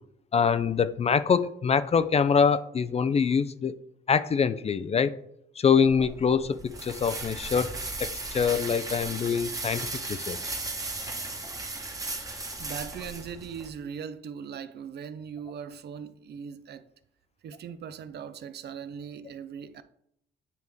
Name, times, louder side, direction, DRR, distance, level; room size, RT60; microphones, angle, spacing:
voice 1, 0.3-3.7 4.1-5.2 5.6-7.7 8.0-10.4, left 6 dB, 30° left, 0.4 m, -24 dB
sound 1, 5.9-13.7, right 2 dB, 15° right, 1.1 m, -36 dB
voice 2, 11.9-16.9 17.4-19.8, right 7 dB, 55° right, 0.5 m, -40 dB
9.3 x 3.1 x 3.4 m
cardioid pair, 90°, 20 cm